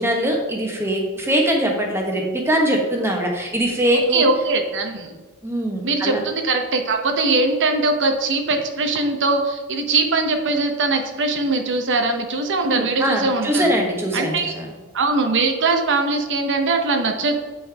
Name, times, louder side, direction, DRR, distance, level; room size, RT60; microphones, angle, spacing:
voice 1, 0.0-4.2 5.4-6.2 12.6-14.7, right 1 dB, 10° right, 1 dB, 1.2 m, -22 dB
voice 2, 4.1-5.1 5.8-13.7 14.1-14.5 14.9-17.4, right 3 dB, 55° right, 5 dB, 0.9 m, -21 dB
8.7 x 5.3 x 3.5 m, 1.3 s
head